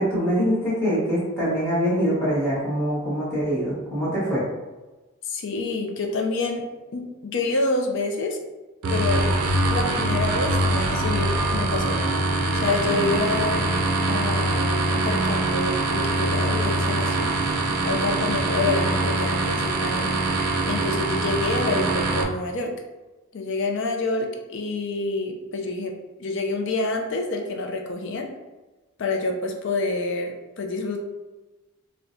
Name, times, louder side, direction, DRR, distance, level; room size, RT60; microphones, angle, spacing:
voice 1, 0.0-4.4, equal, 10° left, -9 dB, 1.3 m, -24 dB
voice 2, 5.3-6.6 6.9-8.4 8.9-9.3 9.7-12.0 12.5-13.7 14.1-17.3 17.8-20.1 20.7-22.7 23.3-25.9 26.2-28.3 29.0-31.0, left 3 dB, 55° left, 3 dB, 0.4 m, -27 dB
sound 1, 8.8-22.2, right 2 dB, 80° right, 0.4 m, -23 dB
4.4 x 2.1 x 2.6 m, 1.2 s
head